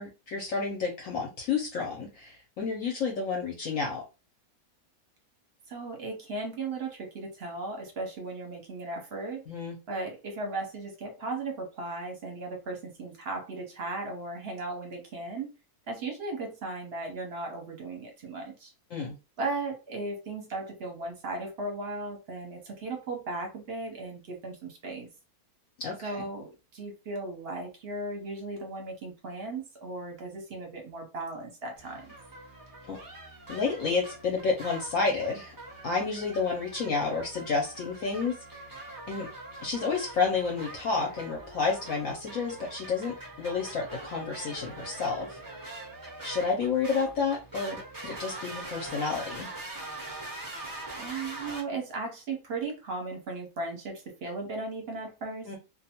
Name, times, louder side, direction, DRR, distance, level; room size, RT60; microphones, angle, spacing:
voice 1, 0.0-4.0 9.5-9.8 18.9-19.2 25.8-26.3 32.9-33.0 33.5-35.5 35.8-38.7 39.1-39.3 39.6-45.4 46.2-49.5 55.5-55.6, left 4 dB, 65° left, 0 dB, 0.9 m, -30 dB
voice 2, 5.7-9.4 9.9-15.5 15.9-18.7 19.4-25.1 26.0-32.1 51.0-55.5, right 3 dB, 50° right, 1 dB, 0.8 m, -36 dB
sound 1, 31.8-51.6, right 2 dB, 35° right, 0.3 m, -43 dB
2.6 x 2.2 x 2.8 m, 0.29 s
omnidirectional pair, 1.7 m